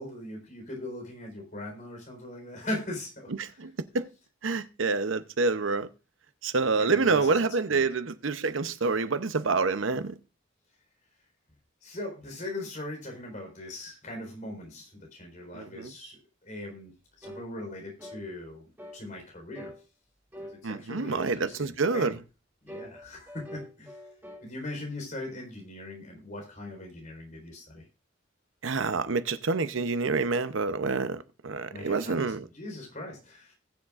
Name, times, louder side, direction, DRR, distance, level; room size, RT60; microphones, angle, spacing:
voice 1, 0.0-3.3 6.7-7.4 7.7-7.9 11.8-18.6 18.9-19.7 20.4-22.2 22.6-24.0 24.4-27.8 31.7-33.5, left 1 dB, 40° left, 4.1 m, -40 dB
voice 2, 3.4-4.1 4.4-5.9 6.4-10.2 15.5-15.9 20.6-22.2 28.6-32.4, right 4 dB, 85° right, 0.8 m, -27 dB
sound 1, 17.2-17.5 18.0-18.3 18.8-19.0 19.5-19.8 20.3-20.6 21.1-21.4 21.9-22.1 22.7-24.5, equal, 10° right, 1.5 m, -44 dB
19.5 x 7.3 x 2.5 m
head